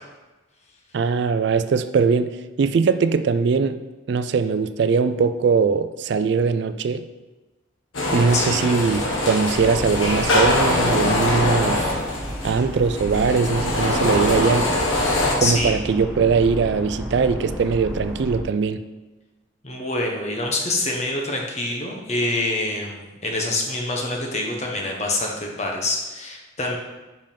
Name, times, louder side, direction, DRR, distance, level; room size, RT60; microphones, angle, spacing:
voice 1, 0.9-3.8 4.1-7.1 8.1-11.9 12.4-14.7 15.4-18.8, right 5 dB, 60° right, 12 dB, 0.3 m, -21 dB
sound 1, 7.9-15.3, left 1 dB, 85° left, 1.5 m, -23 dB
voice 2, 8.3-8.8 15.4-15.7 19.6-26.8, left 2 dB, 35° left, 0 dB, 1.0 m, -26 dB
sound 2, 9.5-18.4, equal, 5° right, 0.7 m, -33 dB
5.3 x 5.2 x 5.2 m, 1.2 s
head